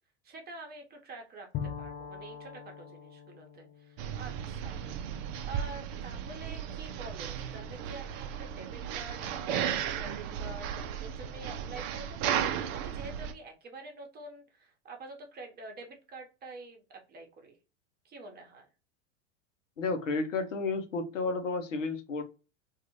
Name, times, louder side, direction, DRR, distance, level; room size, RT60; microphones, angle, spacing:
voice 1, 0.2-4.9 5.4-17.6 18.0-18.7, right 2 dB, 25° right, 0.9 m, -47 dB
Bowed string instrument, 1.5-5.3, left 7 dB, 25° left, 0.3 m, -43 dB
sound 1, 4.0-13.3, right 9 dB, 45° right, 0.5 m, -35 dB
voice 2, 19.8-22.2, left 3 dB, 85° left, 0.7 m, -32 dB
2.5 x 2.4 x 2.9 m
hypercardioid pair, 95°, 37 cm